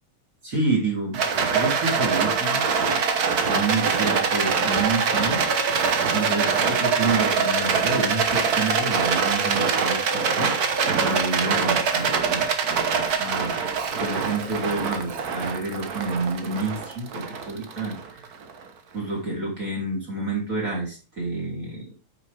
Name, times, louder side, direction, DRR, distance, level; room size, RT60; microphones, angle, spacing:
voice 1, 0.4-3.0 3.5-5.6 6.1-12.5 13.1-13.5 14.0-18.3 18.9-21.9, right 3 dB, 30° right, -3 dB, 3.2 m, -29 dB
Rattle, 1.1-18.5, right 5 dB, 80° right, 0.8 m, -24 dB
8.8 x 6.3 x 3.3 m, 0.34 s
omnidirectional pair, 3.3 m